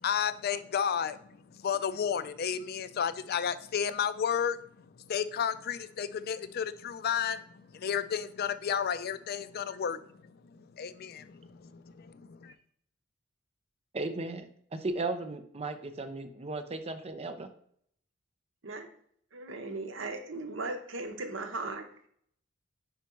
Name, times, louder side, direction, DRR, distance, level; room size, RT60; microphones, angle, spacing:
voice 1, 0.0-4.6 5.0-12.5, left 8 dB, 55° left, 13 dB, 0.4 m, -32 dB
voice 2, 13.9-17.5, right 2 dB, 30° right, 8 dB, 0.6 m, -36 dB
voice 3, 19.3-22.1, right 3 dB, 75° right, 6 dB, 0.9 m, -38 dB
5.1 x 4.6 x 4.5 m, 0.64 s
head